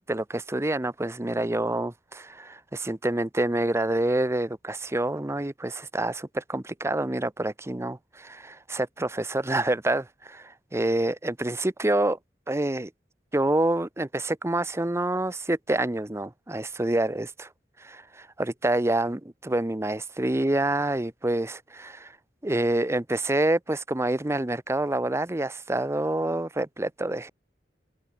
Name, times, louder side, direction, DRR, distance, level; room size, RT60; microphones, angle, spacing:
voice 1, 0.1-12.2 12.5-12.9 13.3-17.5 17.8-22.1 22.4-27.3, right 1 dB, 15° right, 0.7 m, -27 dB
head